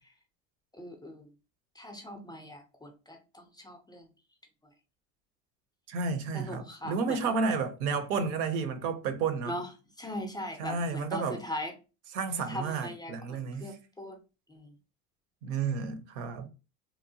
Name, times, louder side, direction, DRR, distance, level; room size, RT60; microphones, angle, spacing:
voice 1, 0.8-1.3 1.8-4.1 6.3-7.4 9.5-9.7 10.0-11.7 12.5-14.2 14.5-14.7, left 1 dB, 10° left, 0.4 m, -40 dB
voice 2, 5.9-9.5 10.6-11.4 12.1-13.7 15.4-16.5, right 5 dB, 70° right, 0.7 m, -31 dB
2.8 x 2.1 x 2.7 m
supercardioid pair, 100°, 38 cm